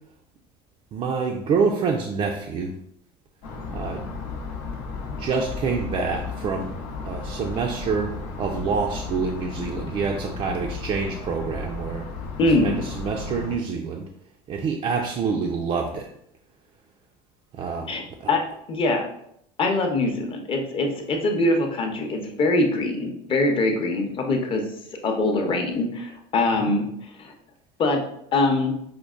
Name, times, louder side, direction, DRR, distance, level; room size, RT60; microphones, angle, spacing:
voice 1, 0.9-2.7 3.7-4.1 5.2-6.7 7.1-12.0 12.4-14.1 14.5-16.1 17.5-18.3 26.7-26.8, right 5 dB, 40° right, 1 dB, 0.4 m, -27 dB
sound 1, 3.4-13.6, left 4 dB, 85° left, 0.8 m, -34 dB
voice 2, 12.4-12.8 17.9-18.4 18.7-19.0 19.6-24.6 25.0-26.9 27.2-27.3 27.8-28.0 28.3-28.7, left 2 dB, 35° left, 3 dB, 0.7 m, -23 dB
5.1 x 2.1 x 2.4 m, 0.72 s
supercardioid pair, 120°, 15 cm